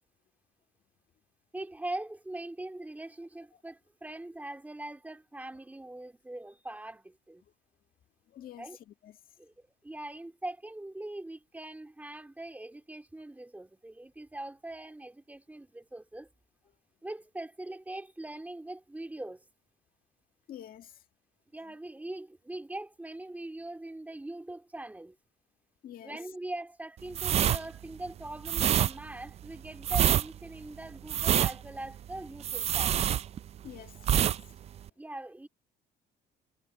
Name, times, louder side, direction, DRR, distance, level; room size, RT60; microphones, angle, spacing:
voice 1, 1.5-7.4 8.6-8.8 9.4-16.3 17.0-19.4 21.5-25.2 26.0-33.0 35.0-35.5, right 1 dB, 10° right, 2.4 m, -42 dB
voice 2, 8.3-9.2 20.5-20.9 25.8-26.2 33.6-34.4, left 11 dB, 60° left, 2.1 m, -47 dB
sound 1, 27.1-33.7 34.0-34.4 34.7-34.9, right 10 dB, 40° right, 0.3 m, -26 dB
cardioid pair, 110°, 17 cm